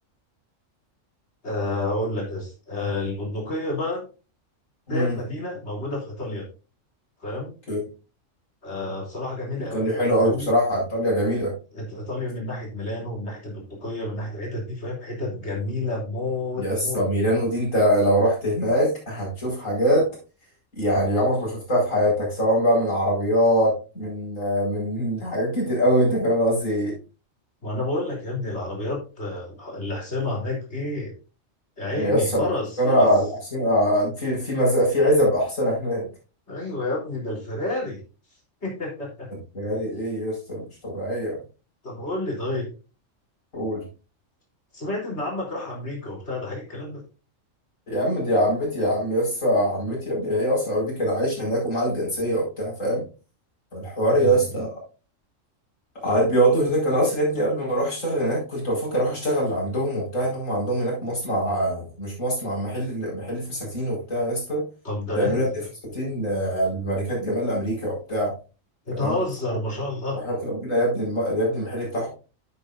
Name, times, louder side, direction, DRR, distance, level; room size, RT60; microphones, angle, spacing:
voice 1, 1.4-4.0 4.9-6.5 7.2-7.5 8.6-10.5 11.7-17.1 27.6-31.1 31.8-33.1 36.5-38.0 38.6-39.3 39.6-39.7 41.8-42.7 44.7-47.0 54.1-54.3 64.8-65.7 68.9-70.2, left 2 dB, 55° left, -2 dB, 3.9 m, -30 dB
voice 2, 9.7-11.5 16.6-20.1 20.8-26.9 31.9-32.5 32.8-36.1 39.5-41.4 43.5-43.8 47.9-53.0 53.7-54.7 56.0-64.6 65.1-65.4 65.9-68.3 68.9-69.2 70.2-72.1, equal, 75° left, -3 dB, 5.3 m, -23 dB
10.0 x 8.5 x 2.6 m, 0.33 s
omnidirectional pair, 1.4 m